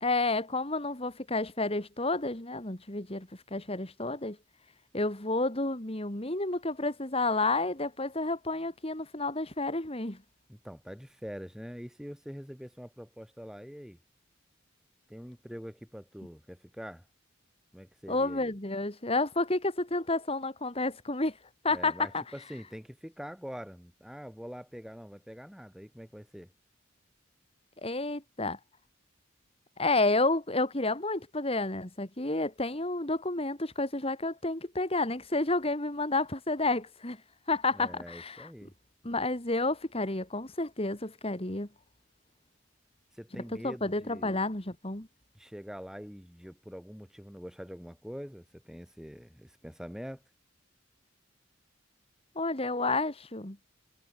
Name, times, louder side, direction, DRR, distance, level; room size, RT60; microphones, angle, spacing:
voice 1, 0.0-4.4 4.9-10.2 18.1-21.4 21.6-22.2 27.8-28.6 29.8-37.2 37.5-38.5 39.0-41.7 43.5-45.1 52.4-53.6, left 2 dB, 30° left, 2.6 m, -30 dB
voice 2, 10.5-14.0 15.1-17.0 17.7-18.5 21.7-26.5 37.7-38.7 43.1-44.4 45.3-50.2, equal, 5° right, 4.7 m, -44 dB
head